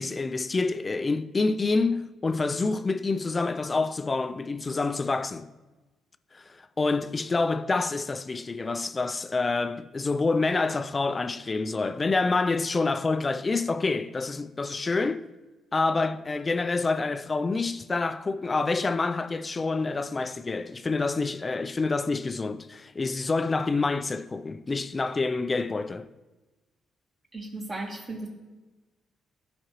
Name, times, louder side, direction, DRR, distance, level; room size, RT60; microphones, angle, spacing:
voice 1, 0.0-5.5 6.3-15.2 15.7-26.1, left 3 dB, 30° left, 0.4 m, -27 dB
voice 2, 27.3-28.3, right 2 dB, 35° right, 2.1 m, -35 dB
13.0 x 5.0 x 3.0 m
cardioid pair, 90°, 0 cm